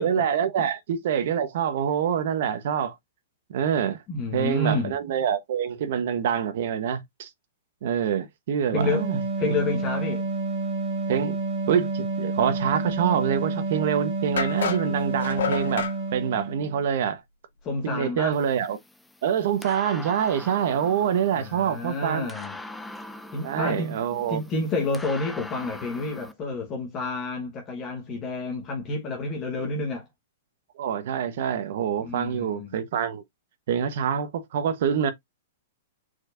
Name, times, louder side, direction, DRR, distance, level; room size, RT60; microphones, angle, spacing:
voice 1, 0.0-2.9 3.5-4.0 4.3-7.3 7.8-9.2 11.1-11.4 11.7-17.2 17.8-18.8 19.2-22.3 23.4-24.4 30.8-33.2 33.7-35.1, right 8 dB, 50° right, 1.0 m, -26 dB
voice 2, 4.1-4.9 8.7-9.1 9.4-10.3 17.6-18.4 21.3-22.6 23.3-24.0 24.3-30.1 32.0-32.7, left 2 dB, 20° left, 1.1 m, -29 dB
sound 1, 8.8-16.9, right 3 dB, 25° right, 1.5 m, -29 dB
sound 2, 13.5-13.6 14.4-16.0, left 7 dB, 80° left, 1.8 m, -29 dB
sound 3, 18.3-26.3, left 1 dB, 5° left, 0.4 m, -42 dB
4.6 x 4.4 x 2.5 m
hypercardioid pair, 165°, 0 cm